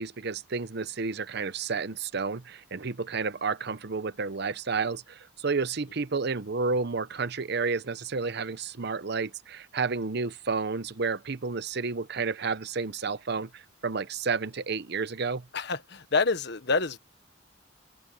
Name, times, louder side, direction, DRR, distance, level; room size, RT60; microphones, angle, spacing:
voice 1, 0.0-15.5, right 4 dB, 60° right, 0.8 m, -31 dB
voice 2, 15.5-17.0, left 4 dB, 60° left, 1.4 m, -27 dB
open air
head